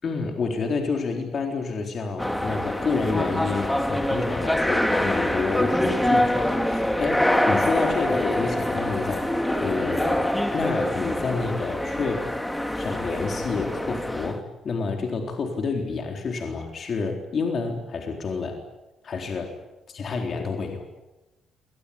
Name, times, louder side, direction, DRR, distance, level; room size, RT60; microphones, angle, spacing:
voice 1, 0.0-12.3 12.8-18.6 19.0-19.6 19.9-20.9, left 4 dB, 50° left, 3 dB, 3.9 m, -29 dB
sound 1, 2.2-14.4, left 1 dB, 5° left, 2.4 m, -25 dB
26.0 x 19.0 x 9.9 m, 1.0 s
cardioid pair, 90°, 0 cm